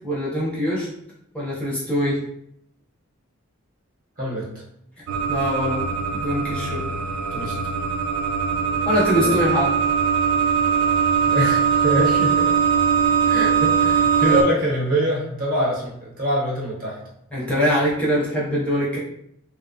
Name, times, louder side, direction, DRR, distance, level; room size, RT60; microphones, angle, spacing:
voice 1, 0.0-0.9 1.3-2.2 5.3-5.8 6.1-6.8 8.9-9.7 14.2-14.5 17.3-19.0, equal, 5° left, -7 dB, 0.5 m, -23 dB
voice 2, 4.2-4.5 7.3-7.6 8.8-9.4 11.3-12.6 13.3-17.0, right 1 dB, 45° right, -4 dB, 0.8 m, -25 dB
sound 1, 5.1-14.4, right 6 dB, 85° right, 0.3 m, -21 dB
2.5 x 2.1 x 2.5 m, 0.75 s
head